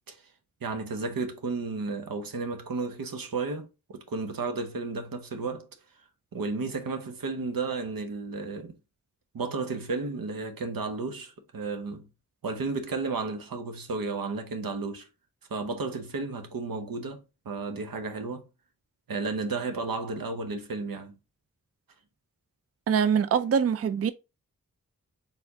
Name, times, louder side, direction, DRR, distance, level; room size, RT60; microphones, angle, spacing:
voice 1, 0.6-5.7 6.3-8.8 9.3-12.0 12.4-15.1 15.5-18.4 19.1-21.2, right 3 dB, 90° right, 0.8 m, -33 dB
voice 2, 22.9-24.1, right 7 dB, 45° right, 0.4 m, -24 dB
4.3 x 3.5 x 2.7 m
cardioid pair, 45°, 33 cm